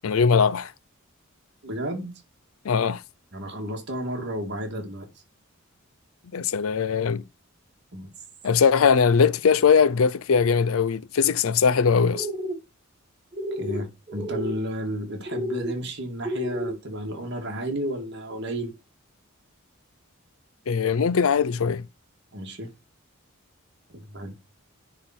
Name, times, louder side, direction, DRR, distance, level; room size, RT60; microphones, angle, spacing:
voice 1, 0.0-0.7 2.6-3.0 6.3-7.2 8.4-12.3 20.7-21.9, left 6 dB, 75° left, 0.5 m, -20 dB
voice 2, 1.6-2.1 3.3-5.1 7.9-8.1 13.6-18.7 22.3-22.7 23.9-24.3, right 1 dB, 55° right, 2.1 m, -32 dB
sound 1, 12.1-12.6 13.3-13.8 14.1-14.6 15.3-15.7 16.2-16.8, equal, 25° right, 1.7 m, -30 dB
10.0 x 3.8 x 4.4 m
head